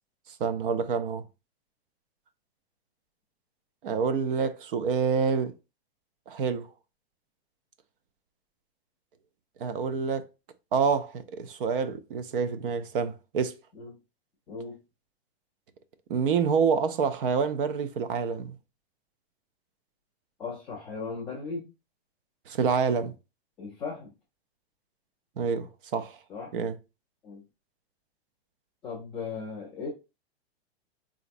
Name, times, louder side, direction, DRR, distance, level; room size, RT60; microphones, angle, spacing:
voice 1, 0.4-1.2 3.8-5.5 6.3-6.7 9.6-10.3 10.7-13.6 16.1-18.5 22.5-23.1 25.4-26.2 26.5-26.7, right 6 dB, 55° right, 0.5 m, -27 dB
voice 2, 14.5-14.8 20.4-21.7 23.6-24.1 26.3-26.5 27.2-27.4 28.8-29.9, left 4 dB, 5° left, 0.3 m, -37 dB
4.0 x 2.5 x 2.5 m
supercardioid pair, 170°, 32 cm